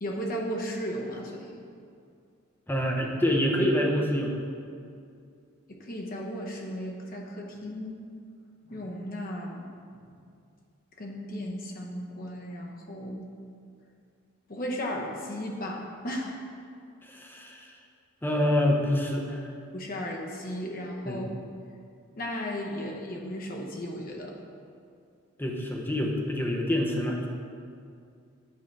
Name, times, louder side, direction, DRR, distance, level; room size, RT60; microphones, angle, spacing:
voice 1, 0.0-1.5 5.7-8.1 8.7-9.6 10.1-10.2 11.0-13.3 14.5-16.3 19.7-21.3 22.2-24.4, equal, 45° left, 0 dB, 0.8 m, -35 dB
voice 2, 2.7-4.3 17.1-17.6 18.2-19.4 21.1-21.3 25.4-27.3, left 1 dB, 10° left, 0 dB, 0.6 m, -26 dB
8.5 x 4.7 x 3.2 m, 2.4 s
head